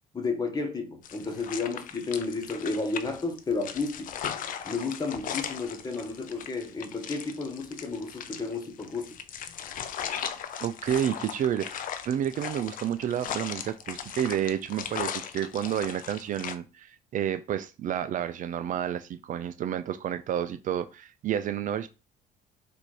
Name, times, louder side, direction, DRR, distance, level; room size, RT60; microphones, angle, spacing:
voice 1, 0.1-4.1 4.6-9.2, left 4 dB, 25° left, 1.2 m, -32 dB
sound 1, 1.0-16.6, left 8 dB, 55° left, 0.6 m, -38 dB
voice 2, 10.6-21.9, right 10 dB, 50° right, 0.4 m, -30 dB
4.1 x 2.7 x 4.7 m
cardioid pair, 110°, 17 cm